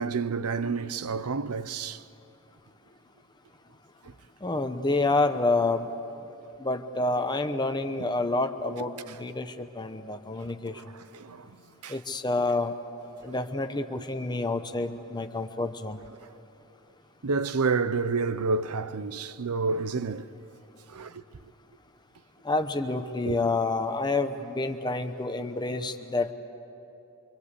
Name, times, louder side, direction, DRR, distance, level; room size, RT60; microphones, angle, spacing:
voice 1, 0.0-2.0 10.7-10.8 11.1-11.5 11.8-11.9 13.3-13.4 17.2-20.3 20.9-21.1 23.2-23.4, right 4 dB, 80° right, 0.7 m, -29 dB
voice 2, 4.4-5.9 6.6-10.8 11.9-12.7 13.2-16.0 22.4-26.3, left 2 dB, 20° left, 0.9 m, -28 dB
25.5 x 25.0 x 8.3 m
head